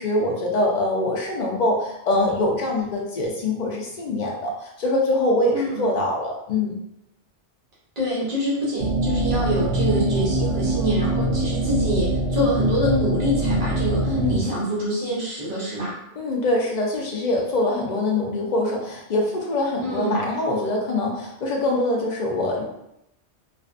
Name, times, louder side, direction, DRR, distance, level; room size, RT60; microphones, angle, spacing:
voice 1, 0.0-6.8 14.1-14.5 16.2-22.6, left 2 dB, 65° left, -2 dB, 0.4 m, -24 dB
voice 2, 5.5-5.9 8.0-16.0 19.8-20.2, equal, 45° right, -7 dB, 0.6 m, -26 dB
sound 1, 8.8-14.4, right 1 dB, 75° right, 0.9 m, -23 dB
2.4 x 2.3 x 2.4 m, 0.82 s
omnidirectional pair, 1.3 m